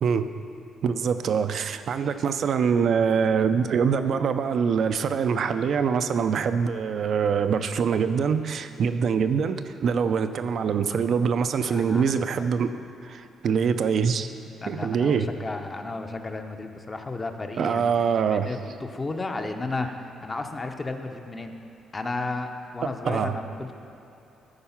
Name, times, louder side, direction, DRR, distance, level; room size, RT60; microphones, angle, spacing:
voice 1, 0.0-0.4 0.8-14.3 14.7-15.3 17.6-18.5 22.8-23.3, right 6 dB, 60° right, 10 dB, 0.5 m, -24 dB
voice 2, 11.7-12.4 14.6-17.9 18.3-21.5 21.9-23.7, left 3 dB, 25° left, 5 dB, 0.7 m, -33 dB
13.5 x 4.7 x 5.8 m, 3.0 s
cardioid pair, 90°, 0 cm